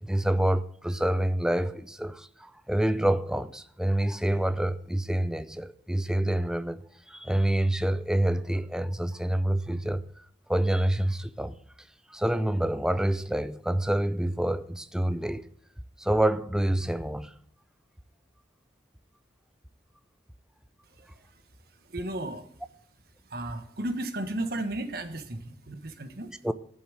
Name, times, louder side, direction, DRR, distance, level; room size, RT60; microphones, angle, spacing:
voice 1, 0.0-6.8 7.1-10.0 10.5-11.5 12.1-15.5 16.0-17.3 26.4-26.5, right 1 dB, 5° right, 0.5 m, -27 dB
voice 2, 20.8-22.5 23.2-26.3, right 1 dB, 60° right, 1.5 m, -35 dB
11.5 x 7.2 x 7.5 m
head